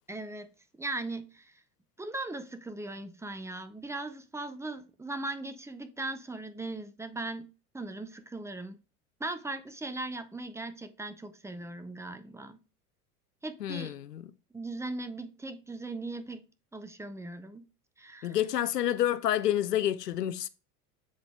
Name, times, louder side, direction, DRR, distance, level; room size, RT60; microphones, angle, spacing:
voice 1, 0.1-0.5 0.7-1.6 2.0-7.5 7.7-8.8 9.2-12.6 13.4-14.0 14.5-16.4 16.7-17.7 18.0-18.4, right 2 dB, 5° right, 0.5 m, -39 dB
voice 2, 13.6-14.2 18.2-20.5, left 11 dB, 90° left, 0.6 m, -28 dB
7.7 x 3.8 x 3.3 m
hypercardioid pair, 80°, 47 cm